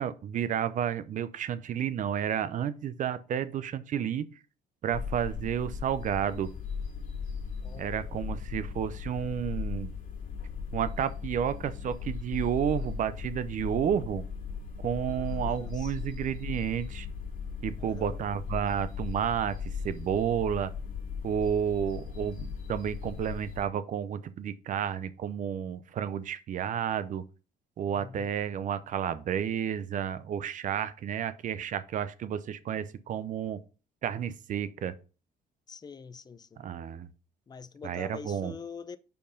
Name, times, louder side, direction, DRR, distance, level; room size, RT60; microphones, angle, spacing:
voice 1, 0.0-4.3 4.8-6.5 7.8-9.9 10.7-14.2 14.8-17.1 17.6-19.6 19.8-20.7 21.2-27.2 27.8-33.6 34.0-34.9 36.6-37.1 37.8-38.5, right 9 dB, 50° right, 0.7 m, -31 dB
sound 1, 4.9-23.7, left 6 dB, 55° left, 2.2 m, -37 dB
voice 2, 7.6-8.1 15.1-16.1 17.8-18.2 27.8-28.3 35.7-36.7 37.5-39.0, left 5 dB, 25° left, 0.5 m, -46 dB
5.4 x 4.5 x 5.1 m
cardioid pair, 110°, 17 cm